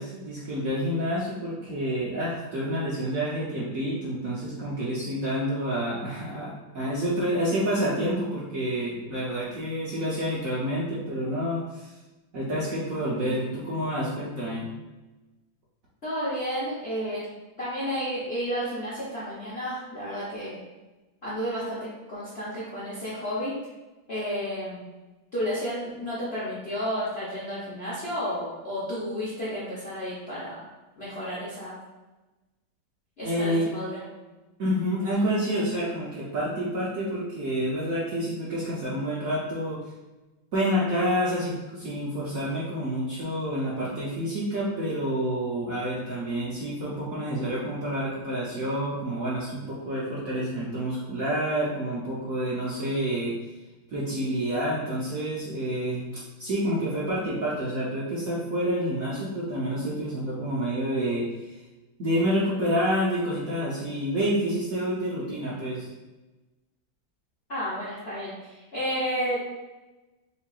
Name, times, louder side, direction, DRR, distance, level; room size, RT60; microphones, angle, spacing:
voice 1, 0.0-11.9 12.3-14.7 33.2-33.7 34.6-39.8 40.5-53.4 53.9-61.5 62.0-65.9, equal, 60° right, -7 dB, 0.9 m, -28 dB
voice 2, 16.0-17.2 17.6-20.6 21.2-23.7 24.1-24.8 25.3-30.6 31.0-31.8 33.2-34.0 67.5-69.4, equal, 50° left, -9 dB, 0.7 m, -32 dB
5.5 x 2.5 x 2.4 m, 1.1 s
omnidirectional pair, 2.2 m